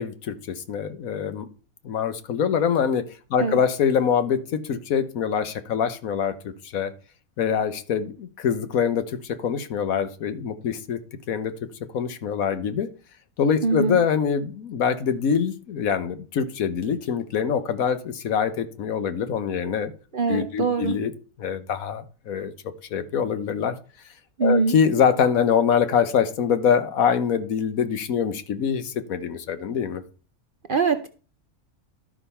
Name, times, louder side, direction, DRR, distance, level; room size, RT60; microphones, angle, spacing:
voice 1, 0.0-1.5 1.8-3.0 3.3-6.9 7.4-11.0 11.3-11.7 11.9-12.9 13.4-19.9 20.3-21.1 21.4-22.5 22.9-23.8 24.4-30.0, left 7 dB, 75° left, 11 dB, 1.3 m, -24 dB
voice 2, 13.6-14.0 20.1-21.0 24.4-24.7 30.7-31.1, right 4 dB, 50° right, 8 dB, 0.7 m, -23 dB
12.5 x 5.0 x 5.6 m, 0.38 s
omnidirectional pair, 1.5 m